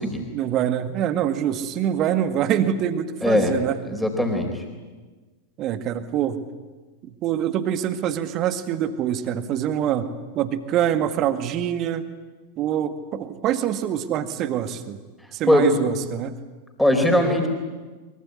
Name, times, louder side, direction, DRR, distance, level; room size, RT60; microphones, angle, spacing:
voice 1, 0.3-3.8 5.6-6.4 7.0-12.0 12.6-15.0 15.3-16.4, right 10 dB, 35° right, 11 dB, 1.9 m, -25 dB
voice 2, 3.2-3.5 3.9-4.6 15.5-15.7 16.8-17.5, left 1 dB, 5° left, 3 dB, 4.5 m, -20 dB
23.5 x 23.5 x 9.8 m, 1.3 s
figure-of-eight pair, 90°, 0 cm